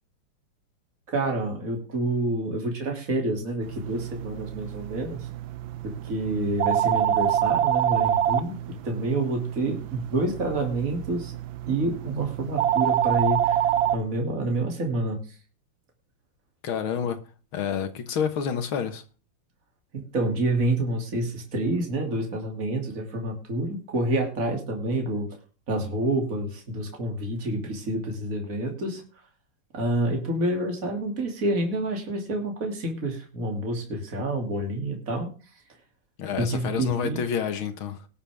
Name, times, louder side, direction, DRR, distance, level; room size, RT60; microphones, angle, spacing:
voice 1, 1.1-5.3 5.8-11.4 11.7-15.2 19.9-25.3 25.7-29.0 29.7-35.3 36.4-37.2, right 2 dB, 40° right, 3.2 m, -28 dB
sound 1, 3.6-14.0, right 11 dB, 75° right, 1.5 m, -27 dB
voice 2, 16.6-17.2 17.5-19.0 36.2-38.1, left 7 dB, 75° left, 2.2 m, -28 dB
19.5 x 7.2 x 3.5 m
omnidirectional pair, 2.3 m